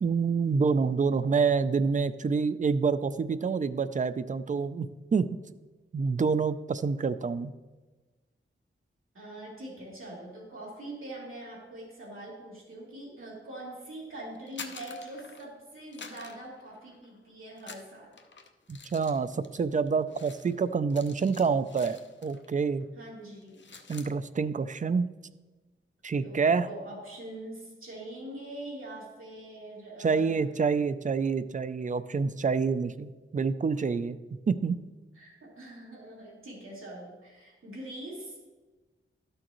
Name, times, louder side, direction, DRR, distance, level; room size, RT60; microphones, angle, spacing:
voice 1, 0.0-5.3 5.9-7.5 18.7-22.9 23.9-25.1 26.0-26.7 30.0-34.2 34.5-34.8, right 5 dB, 35° right, 13 dB, 0.4 m, -27 dB
voice 2, 9.1-18.1 22.9-23.8 26.2-30.4 35.1-38.4, right 1 dB, 75° right, -5 dB, 2.9 m, -43 dB
sound 1, 14.3-15.6 15.9-17.2 17.6-22.5 22.8-23.0 23.3-24.1, left 5 dB, 60° left, 0.7 m, -48 dB
12.5 x 6.4 x 3.0 m, 1.2 s
wide cardioid pair, 100°, 21 cm